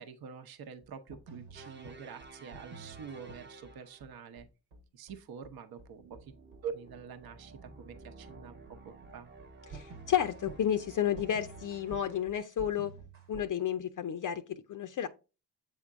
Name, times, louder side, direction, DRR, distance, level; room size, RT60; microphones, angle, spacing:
voice 1, 0.0-4.5 4.9-6.3 6.6-9.3, right 7 dB, 55° right, 0.8 m, -46 dB
sound 1, 0.8-13.5, right 4 dB, 90° right, 1.4 m, -50 dB
sound 2, 1.5-4.2 6.0-12.2, right 3 dB, 25° right, 0.8 m, -53 dB
voice 2, 9.7-12.9 13.3-15.1, left 10 dB, 45° left, 0.5 m, -31 dB
7.5 x 3.6 x 3.6 m
supercardioid pair, 60°, 44 cm